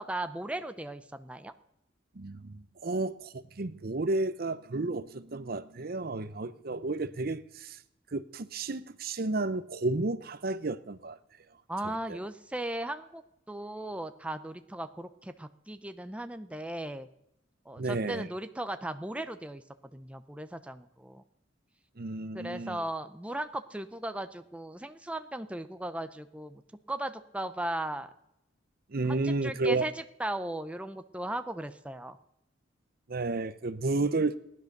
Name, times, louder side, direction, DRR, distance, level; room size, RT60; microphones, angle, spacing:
voice 1, 0.0-1.5 11.7-13.2 13.5-17.1 17.7-19.6 19.9-21.2 22.3-26.6 26.9-28.1 29.1-32.2, right 1 dB, 5° right, 0.6 m, -37 dB
voice 2, 2.2-7.8 8.1-11.2 11.8-12.2 17.8-18.3 22.0-22.8 28.9-29.9 33.1-34.4, right 3 dB, 50° right, 0.7 m, -32 dB
18.0 x 10.5 x 6.6 m
head